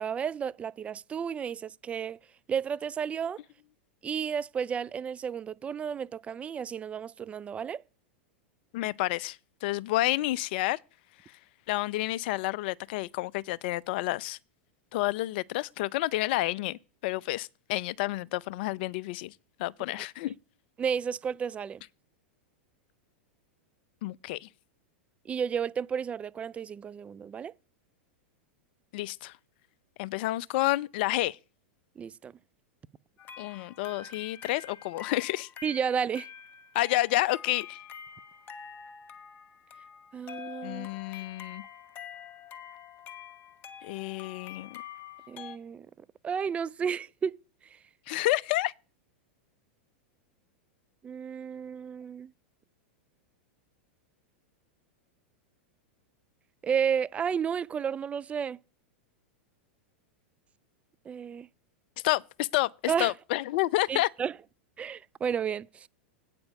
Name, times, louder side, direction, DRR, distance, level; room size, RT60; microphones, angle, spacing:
voice 1, 0.0-2.2 2.5-3.4 4.0-7.8 20.8-21.8 25.3-27.5 32.0-32.3 35.6-36.3 40.1-40.9 45.3-45.9 46.2-47.4 51.0-52.3 56.6-58.6 61.1-61.5 62.9-63.1 63.9-64.3 64.8-65.9, right 7 dB, 20° right, 0.4 m, -32 dB
voice 2, 8.7-10.8 11.7-14.4 14.9-19.3 19.6-20.3 24.0-24.5 28.9-29.3 30.0-31.4 33.4-35.5 36.7-37.8 40.6-41.6 43.8-44.8 48.1-48.7 62.0-64.1, left 17 dB, 60° left, 0.5 m, -30 dB
sound 1, 33.2-45.6, left 8 dB, 35° left, 1.2 m, -46 dB
9.1 x 6.8 x 5.3 m
hypercardioid pair, 110°, 6 cm